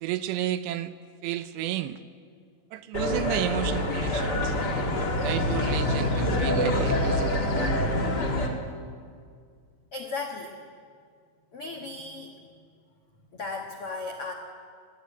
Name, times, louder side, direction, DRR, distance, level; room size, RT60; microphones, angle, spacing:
voice 1, 0.0-0.9 1.2-2.0 2.7-4.5 5.2-7.9, right 12 dB, 80° right, 12 dB, 2.6 m, -32 dB
sound 1, 2.9-8.5, left 1 dB, 50° left, 1.2 m, -26 dB
voice 2, 9.9-10.5 11.5-12.4 13.3-14.3, left 3 dB, 75° left, 2 dB, 1.3 m, -35 dB
21.5 x 16.5 x 9.4 m, 2.2 s
omnidirectional pair, 5.3 m